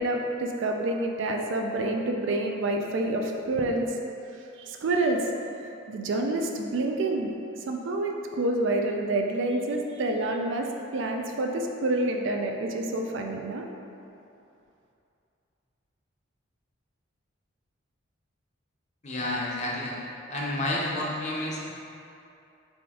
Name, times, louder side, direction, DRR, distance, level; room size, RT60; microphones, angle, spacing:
voice 1, 0.0-3.9 4.6-5.3 5.9-7.3 7.7-10.7 10.9-13.7, right 2 dB, 65° right, 2 dB, 0.4 m, -28 dB
voice 2, 19.0-19.9 20.3-21.7, left 1 dB, 35° left, -4 dB, 0.6 m, -30 dB
4.9 x 2.5 x 3.6 m, 2.6 s
head